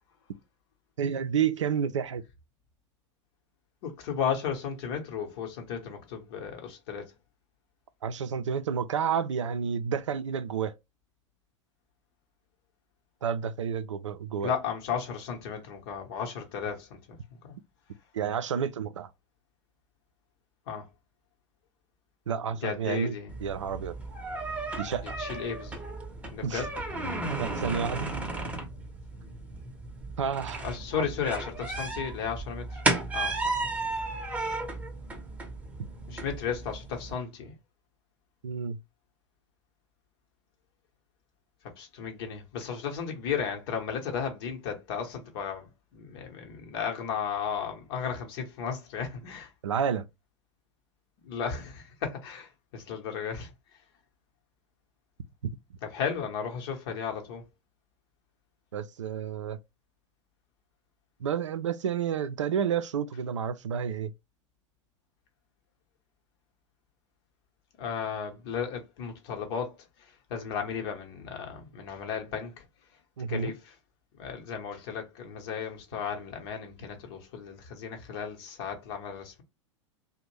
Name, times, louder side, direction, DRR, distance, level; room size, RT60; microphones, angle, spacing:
voice 1, 1.0-2.2 8.0-10.7 13.2-14.5 18.1-19.1 22.3-24.0 24.8-25.1 26.4-26.7 27.4-28.1 30.2-30.7 30.9-31.1 38.4-38.8 49.6-50.1 58.7-59.6 61.2-64.1 73.2-73.5, right 7 dB, 75° right, 0.4 m, -30 dB
voice 2, 3.8-7.1 14.4-17.6 20.7-20.8 22.6-23.3 25.2-25.8 26.3-26.7 30.6-32.8 33.1-33.7 36.1-37.5 41.8-49.5 51.2-53.5 55.8-57.4 67.8-69.8 70.3-72.6 73.3-73.7 74.2-79.4, left 7 dB, 50° left, 0.9 m, -34 dB
sound 1, 23.3-37.1, right 2 dB, 10° right, 0.7 m, -34 dB
2.5 x 2.1 x 3.0 m
figure-of-eight pair, 90°, 16 cm